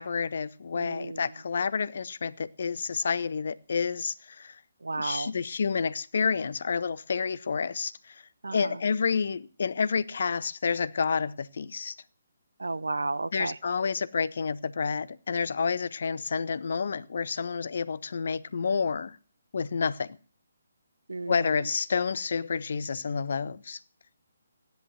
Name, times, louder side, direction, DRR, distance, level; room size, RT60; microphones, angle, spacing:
voice 1, 0.0-4.6 4.9-8.2 8.5-11.9 13.3-19.2 19.5-20.2 21.3-23.8, left 5 dB, 50° left, 0.8 m, -29 dB
voice 2, 0.7-1.2 4.8-5.3 8.4-8.7 12.6-13.5 21.1-21.4, right 3 dB, 65° right, 0.8 m, -32 dB
15.5 x 10.5 x 7.8 m
figure-of-eight pair, 140°, 0 cm